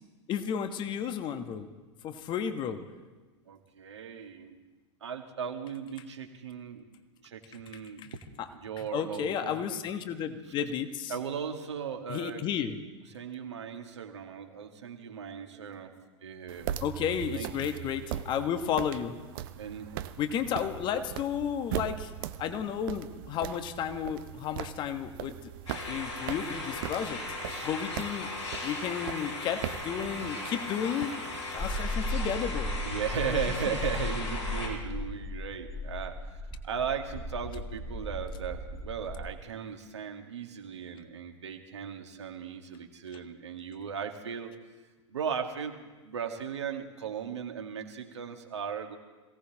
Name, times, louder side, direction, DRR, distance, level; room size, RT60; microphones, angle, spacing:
voice 1, 0.3-1.7 2.0-2.8 8.0-8.1 8.4-8.5 8.8-11.1 12.1-12.8 16.8-19.2 20.2-22.1 22.4-25.4 25.9-27.2 27.6-28.3 28.6-31.2 31.5-32.7 33.3-33.4 33.7-33.8, left 8 dB, 30° left, 9 dB, 1.3 m, -32 dB
voice 2, 3.5-4.6 5.0-6.8 7.2-8.0 8.5-9.8 11.1-12.4 13.1-15.9 16.2-16.8 17.3-17.5 19.6-20.0 27.5-27.7 32.8-36.2 36.6-44.5 45.1-49.0, right 7 dB, 65° right, 3 dB, 1.9 m, -37 dB
sound 1, 16.5-31.9, right 12 dB, 45° right, 0.8 m, -40 dB
sound 2, 25.7-34.7, left 2 dB, 80° left, 6.6 m, -37 dB
sound 3, 31.6-39.3, left 1 dB, 5° left, 2.1 m, -36 dB
27.0 x 17.0 x 3.0 m, 1.3 s
figure-of-eight pair, 95°, 15 cm